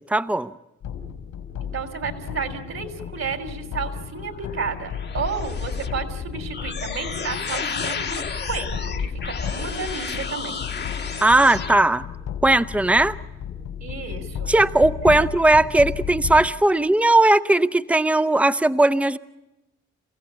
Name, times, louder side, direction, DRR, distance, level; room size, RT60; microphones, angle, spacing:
voice 1, 0.1-0.5 11.2-12.1 12.4-13.2 14.5-19.2, right 2 dB, 5° right, 13 dB, 0.7 m, -18 dB
sound 1, 0.8-16.5, left 8 dB, 75° left, 2.9 m, -34 dB
voice 2, 1.6-10.6 13.8-14.5 15.0-15.2, right 5 dB, 60° right, 7 dB, 3.3 m, -32 dB
sound 2, 4.1-11.8, left 5 dB, 35° left, 1.2 m, -31 dB
29.0 x 15.5 x 8.6 m, 0.97 s
supercardioid pair, 55°, 30 cm